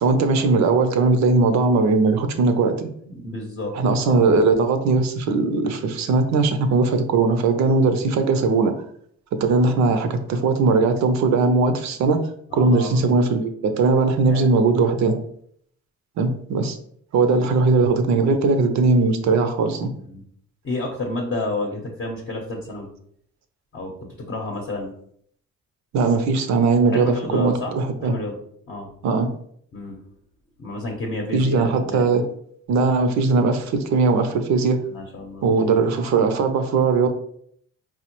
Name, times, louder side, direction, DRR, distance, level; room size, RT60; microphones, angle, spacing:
voice 1, 0.0-2.7 3.7-8.7 9.4-12.2 12.5-15.2 16.2-16.8 17.1-19.9 25.9-28.1 29.0-29.3 31.3-32.2 32.7-34.8 35.4-37.1, right 3 dB, 65° right, 7 dB, 0.5 m, -19 dB
voice 2, 3.1-4.1 12.5-13.0 14.2-14.5 19.9-20.2 20.6-22.9 23.7-24.9 26.9-27.7 28.0-28.4 28.7-28.9 29.7-30.0 30.6-32.2 34.9-35.4, left 2 dB, 40° left, -1 dB, 0.7 m, -31 dB
4.3 x 2.1 x 2.9 m, 0.66 s
cardioid pair, 90°, 30 cm